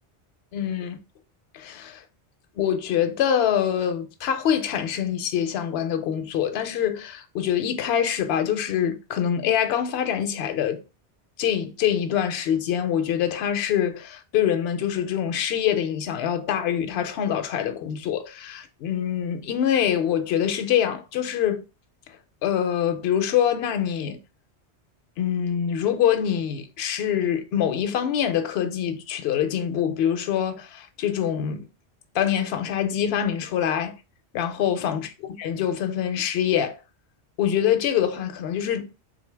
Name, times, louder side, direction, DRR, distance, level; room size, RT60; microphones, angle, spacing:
voice 1, 0.5-1.0 1.5-2.0 2.6-10.8 11.4-21.6 22.4-24.2 25.2-31.7 32.1-33.9 34.3-35.1 35.4-36.8 37.4-38.9, left 9 dB, 70° left, 0.8 m, -25 dB
3.7 x 2.8 x 3.3 m
omnidirectional pair, 1.2 m